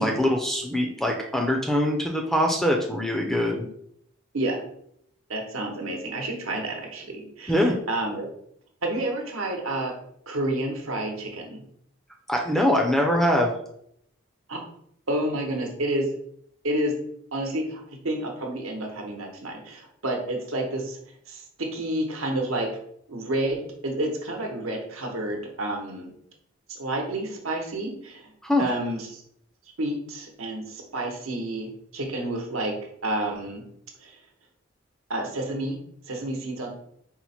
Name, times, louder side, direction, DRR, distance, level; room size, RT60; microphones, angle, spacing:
voice 1, 0.0-3.7 7.5-7.7 12.3-13.5 28.4-28.7, left 1 dB, ahead, 1 dB, 0.4 m, -23 dB
voice 2, 5.3-7.5 7.9-8.3 8.8-9.9 10.3-11.6 14.5-14.6 15.1-16.1 16.6-16.9 17.3-17.8 18.0-21.0 21.3-22.7 23.1-26.1 26.8-28.2 28.6-29.2 29.8-32.7 33.0-33.6 35.1-35.8 36.1-36.7, right 1 dB, 85° right, 1 dB, 0.9 m, -29 dB
4.2 x 2.1 x 4.2 m, 0.71 s
head